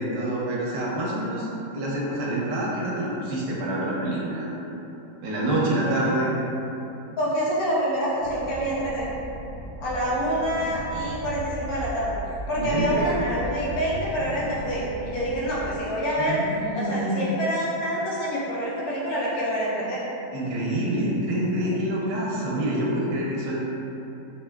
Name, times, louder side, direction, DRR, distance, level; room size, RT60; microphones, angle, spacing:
voice 1, 0.0-1.5 1.7-4.5 5.2-6.3 12.5-13.1 16.2-17.4 20.3-23.6, right 1 dB, 90° right, -5 dB, 1.4 m, -27 dB
voice 2, 5.8-6.1 7.2-9.1 9.8-12.2 12.5-16.4 16.7-20.0, equal, 65° left, -7 dB, 1.1 m, -27 dB
sound 1, 8.2-15.8, right 1 dB, 65° right, 0.8 m, -37 dB
4.6 x 2.6 x 2.2 m, 2.9 s
omnidirectional pair, 1.9 m